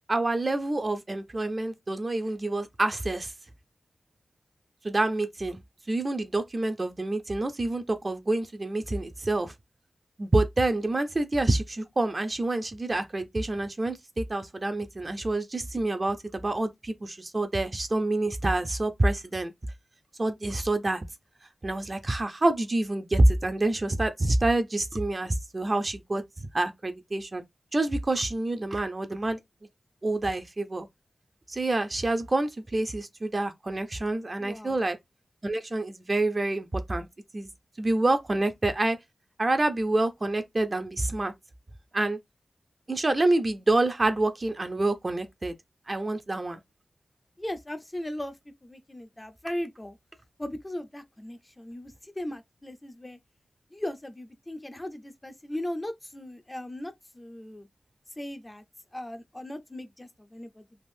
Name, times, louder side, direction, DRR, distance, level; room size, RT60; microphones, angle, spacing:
voice 1, 0.1-3.3 4.8-5.6 5.9-9.5 10.2-19.5 20.2-21.0 21.6-26.2 26.5-27.4 27.7-29.4 30.0-30.9 31.5-35.0 35.4-37.1 37.3-37.5 37.8-39.0 39.4-41.3 41.9-42.2 42.9-45.5 45.9-46.6, right 2 dB, 35° right, 0.6 m, -27 dB
voice 2, 34.4-34.8 38.3-38.4 47.4-48.4 48.6-50.0 50.4-53.2 53.7-57.7 58.2-58.6 58.9-60.8, left 1 dB, 20° left, 0.5 m, -38 dB
3.4 x 2.5 x 2.6 m
wide cardioid pair, 90°, 0 cm